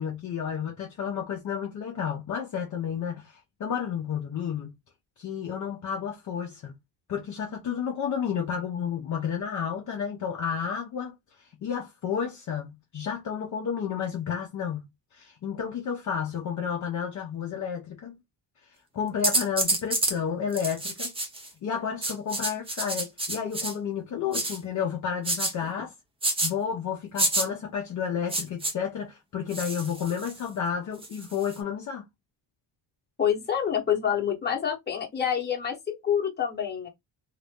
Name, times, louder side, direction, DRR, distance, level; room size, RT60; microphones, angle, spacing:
voice 1, 0.0-4.7 5.2-6.8 7.1-14.8 15.1-18.2 18.9-21.1 21.6-25.9 26.4-32.0, left 7 dB, 40° left, 0.6 m, -31 dB
sound 1, 19.2-20.2 20.5-21.5 22.0-23.7 24.3-24.6 25.2-25.5 26.2-26.5 27.2-27.5 28.3-28.7 29.5-30.4 31.0-31.6, right 2 dB, 15° right, 0.5 m, -28 dB
voice 2, 33.2-36.9, left 8 dB, 20° left, 1.0 m, -27 dB
2.8 x 2.5 x 3.5 m
cardioid pair, 160°, 45 cm